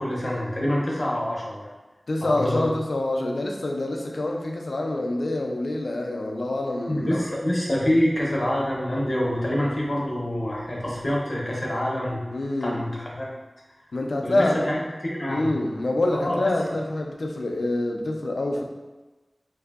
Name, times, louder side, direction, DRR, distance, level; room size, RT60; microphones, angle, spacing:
voice 1, 0.0-1.7 2.2-2.7 6.9-12.2 12.6-13.3 14.2-15.5 16.1-16.5, left 1 dB, 45° left, -4 dB, 0.6 m, -26 dB
voice 2, 2.1-7.2 12.3-12.8 13.9-14.6 15.3-18.6, left 2 dB, 85° left, 1 dB, 0.3 m, -26 dB
2.6 x 2.5 x 2.3 m, 1.2 s
wide cardioid pair, 50°, 0 cm